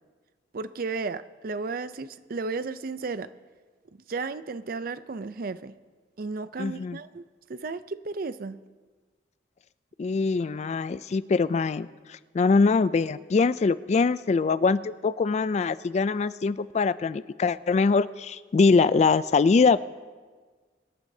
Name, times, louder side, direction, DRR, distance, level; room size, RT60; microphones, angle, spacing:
voice 1, 0.5-3.3 4.1-5.8 6.2-8.6, right 4 dB, 55° right, 14 dB, 0.5 m, -34 dB
voice 2, 6.6-7.0 10.0-19.8, left 4 dB, 40° left, 16 dB, 0.3 m, -23 dB
24.5 x 11.0 x 2.7 m, 1.4 s
head